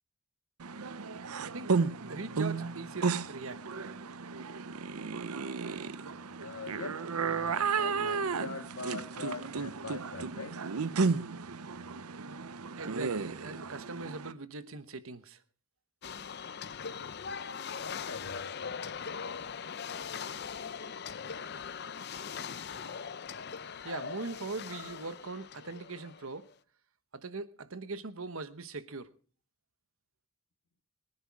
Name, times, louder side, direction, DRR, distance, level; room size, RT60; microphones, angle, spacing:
sound 1, 0.6-14.3, right 5 dB, 90° right, 0.7 m, -34 dB
voice 1, 2.1-3.7 12.8-15.4 23.8-26.5 27.1-29.1, right 3 dB, 70° right, 1.1 m, -41 dB
voice 2, 6.4-10.6 17.0-17.3 17.8-18.8, left 3 dB, 90° left, 1.7 m, -43 dB
sound 2, 16.0-26.4, left 6 dB, 50° left, 0.6 m, -41 dB
23.0 x 10.0 x 4.7 m
head